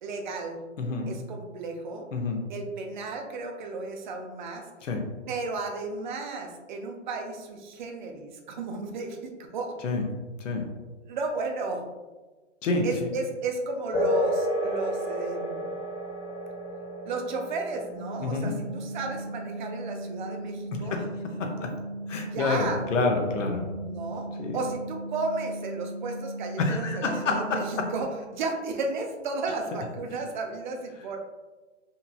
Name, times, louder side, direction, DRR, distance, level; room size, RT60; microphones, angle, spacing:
voice 1, 0.0-0.6 1.1-2.0 2.5-4.7 5.3-9.8 11.1-11.9 12.8-15.7 17.1-21.1 22.2-22.9 23.8-24.3 24.5-31.2, right 3 dB, 40° right, 3 dB, 0.4 m, -33 dB
voice 2, 0.8-1.1 2.1-2.4 4.8-5.0 9.8-10.0 10.4-10.6 12.6-12.9 18.2-18.5 20.9-21.0 21.4-21.7 22.1-23.6 24.4-24.6 26.6-27.9, left 3 dB, 80° left, 2 dB, 0.7 m, -28 dB
sound 1, 13.9-21.9, equal, 25° left, 1.2 m, -32 dB
sound 2, 17.9-28.0, right 1 dB, 75° right, 1.0 m, -37 dB
2.9 x 2.8 x 2.2 m, 1.3 s
hypercardioid pair, 140°, 37 cm